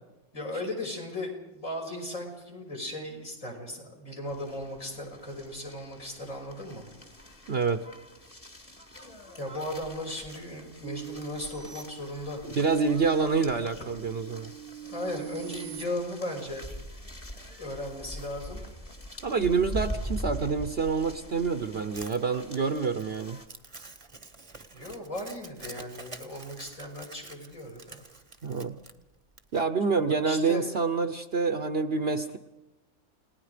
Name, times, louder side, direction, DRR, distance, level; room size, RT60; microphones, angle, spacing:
voice 1, 0.3-6.9 9.4-12.4 14.9-16.6 17.6-18.6 24.7-28.0 30.2-30.6, left 1 dB, 65° left, -1 dB, 6.3 m, -37 dB
sound 1, 4.3-23.5, equal, 25° left, 2.1 m, -43 dB
voice 2, 7.5-7.8 12.6-14.5 19.2-23.4 28.4-28.8 29.5-32.4, right 5 dB, 50° right, 9 dB, 1.1 m, -27 dB
sound 2, 10.8-12.8 13.3-15.9, right 10 dB, 70° right, 1.4 m, -43 dB
Crumpling crinkling, 21.9-29.6, right 3 dB, 25° right, 1.1 m, -48 dB
29.5 x 19.0 x 5.1 m, 0.99 s
omnidirectional pair, 1.5 m